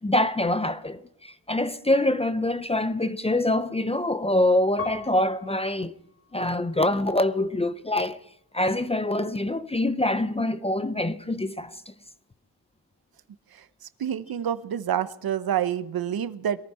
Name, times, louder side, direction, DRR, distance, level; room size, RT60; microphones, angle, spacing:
voice 1, 0.0-5.9 6.3-8.2 8.5-11.9, left 1 dB, 15° left, 0.6 m, -25 dB
Piano, 4.8-7.5 8.2-8.9, left 6 dB, 30° left, 1.8 m, -44 dB
voice 2, 14.0-16.6, right 9 dB, 55° right, 0.8 m, -27 dB
22.0 x 14.0 x 4.3 m
wide cardioid pair, 135°, 42 cm